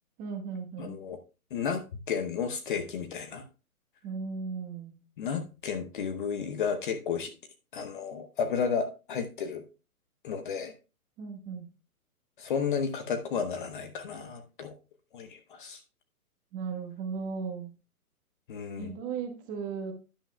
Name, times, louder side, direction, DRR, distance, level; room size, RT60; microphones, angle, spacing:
voice 1, 0.2-1.0 4.0-5.0 11.2-11.7 16.5-17.7 18.8-19.9, right 5 dB, 20° right, 4 dB, 1.2 m, -36 dB
voice 2, 0.8-1.2 1.5-3.4 5.2-7.3 7.7-9.6 10.2-10.7 12.4-14.7 15.1-15.8 18.5-18.9, left 6 dB, 35° left, 7 dB, 0.8 m, -32 dB
11.0 x 10.0 x 2.3 m, 0.31 s
hypercardioid pair, 145°, 45 cm